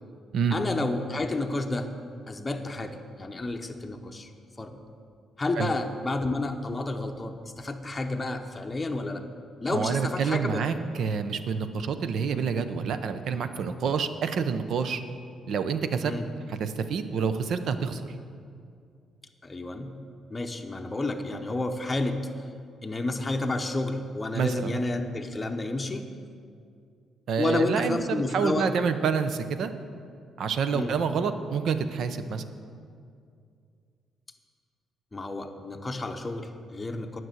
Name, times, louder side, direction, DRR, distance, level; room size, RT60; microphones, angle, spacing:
voice 1, 0.5-1.9 2.3-4.3 4.6-4.8 5.4-9.2 9.6-10.6 16.0-16.3 19.4-19.9 20.3-22.2 22.8-26.1 27.4-28.7 30.7-30.9 35.1-37.2, left 2 dB, 20° left, 4 dB, 0.8 m, -30 dB
voice 2, 9.7-15.0 15.5-16.1 16.5-18.0 24.3-24.7 27.3-29.7 30.4-32.4, right 6 dB, 70° right, 10 dB, 0.6 m, -28 dB
9.9 x 6.1 x 7.8 m, 2.3 s
cardioid pair, 90°, 0 cm